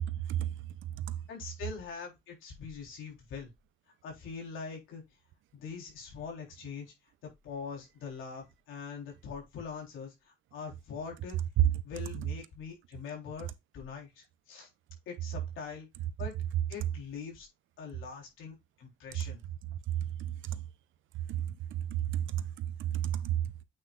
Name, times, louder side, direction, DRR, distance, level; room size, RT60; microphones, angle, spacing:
voice 1, 1.3-3.5 4.0-5.0 5.5-6.9 7.2-11.4 11.8-14.7 15.1-15.9 16.2-16.3 16.7-17.5 17.8-19.4, left 6 dB, 85° left, 3.7 m, -43 dB
voice 2, 20.2-20.6 21.3-21.8 22.1-22.4 22.8-23.4, right 11 dB, 80° right, 0.7 m, -32 dB
8.6 x 5.8 x 2.5 m
cardioid pair, 90°, 20 cm